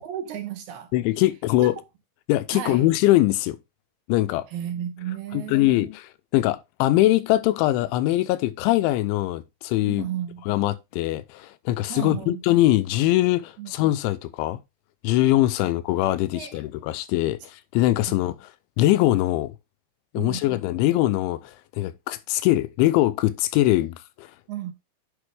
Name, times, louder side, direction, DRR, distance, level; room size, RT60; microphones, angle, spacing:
voice 1, 0.0-0.9 1.6-1.7 2.5-2.9 4.5-5.9 9.8-10.5 11.9-12.4 13.6-13.7 15.6-15.7 16.3-16.6 20.1-20.4 24.5-24.7, right 11 dB, 80° right, 2.4 m, -33 dB
voice 2, 0.9-1.7 2.3-3.6 4.1-4.5 5.3-10.1 10.5-14.6 15.0-18.5 18.8-19.5 20.1-24.3, left 15 dB, 80° left, 2.9 m, -22 dB
9.7 x 5.9 x 3.3 m
omnidirectional pair, 5.7 m